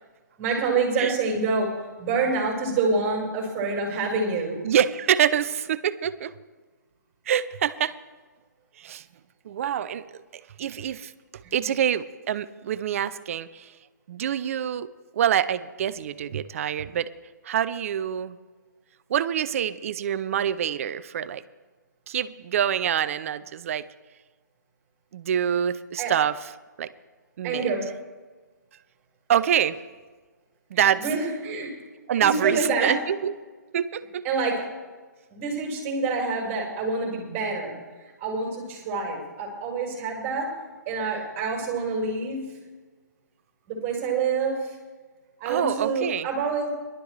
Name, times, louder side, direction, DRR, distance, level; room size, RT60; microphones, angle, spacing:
voice 1, 0.4-4.6 26.0-26.1 27.4-27.9 31.0-31.8 32.2-33.0 34.2-34.7 35.3-37.8 38.2-40.6 40.9-42.5 43.7-44.8 45.4-46.7, right 4 dB, 20° right, -2 dB, 4.6 m, -27 dB
voice 2, 4.6-6.3 7.3-8.0 8.8-9.0 9.5-10.1 10.6-11.1 11.5-13.7 14.1-14.9 15.1-17.1 17.5-18.4 19.1-21.4 22.1-23.8 25.1-26.3 26.8-26.9 27.4-27.7 29.3-29.8 30.7-31.0 32.1-33.4 33.7-34.2 45.5-46.3, right 9 dB, 45° right, 15 dB, 0.6 m, -25 dB
21.5 x 12.0 x 3.3 m, 1.4 s
hypercardioid pair, 145°, 10 cm